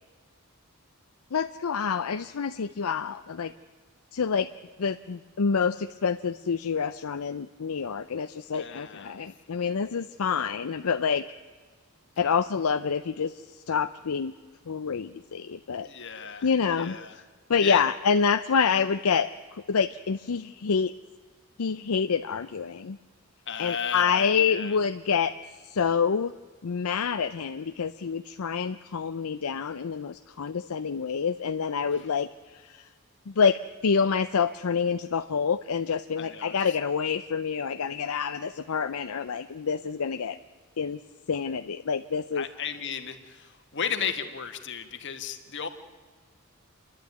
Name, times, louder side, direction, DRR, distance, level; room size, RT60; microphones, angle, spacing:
voice 1, 1.3-3.5 4.1-4.5 4.8-11.2 12.2-14.3 14.7-15.9 16.4-17.0 17.5-20.9 21.6-23.0 23.6-25.3 25.6-26.3 26.6-32.9 33.3-40.4 40.8-41.0 41.3-42.4, left 6 dB, 75° left, 9 dB, 0.5 m, -27 dB
voice 2, 8.5-9.2 12.2-12.3 15.8-17.2 17.6-17.8 23.5-24.8 31.8-32.0 36.2-36.7 42.3-45.7, left 7 dB, 55° left, 7 dB, 1.6 m, -35 dB
29.0 x 11.5 x 9.4 m, 1.5 s
head